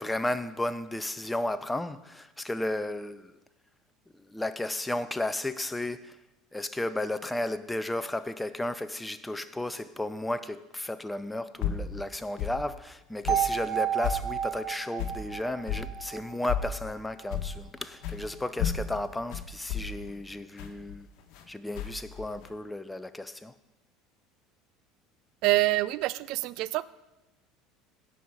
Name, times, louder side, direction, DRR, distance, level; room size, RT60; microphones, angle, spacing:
voice 1, 0.0-3.4 4.2-6.2 6.5-21.1 21.5-23.6, left 1 dB, 10° left, 0.7 m, -33 dB
sound 1, 11.6-11.9 12.4-12.6 13.2-13.5 14.0-14.3 15.0-15.2 15.7-15.9 16.5-16.8 17.3-17.6 18.0-18.2 18.6-21.4 21.7-22.5, left 8 dB, 60° left, 1.3 m, -32 dB
sound 2, 13.3-17.3, right 9 dB, 30° right, 1.5 m, -32 dB
voice 2, 25.4-26.8, right 18 dB, 60° right, 0.4 m, -26 dB
16.5 x 5.6 x 5.0 m
hypercardioid pair, 70°, 0 cm